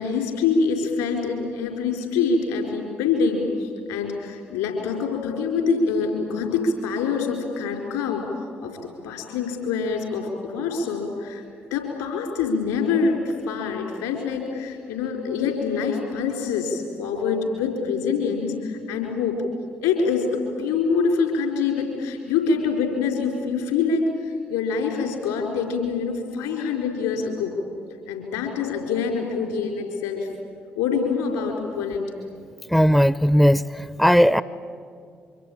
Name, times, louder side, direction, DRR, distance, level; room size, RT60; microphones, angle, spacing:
voice 1, 0.0-8.2 8.6-8.8 9.0-11.4 11.7-19.4 19.8-27.6 28.1-30.3 30.8-32.1, left 5 dB, 75° left, 3 dB, 4.4 m, -25 dB
voice 2, 32.7-34.4, equal, ahead, 17 dB, 0.6 m, -17 dB
25.0 x 24.0 x 8.7 m, 2.4 s
figure-of-eight pair, 40°, 6 cm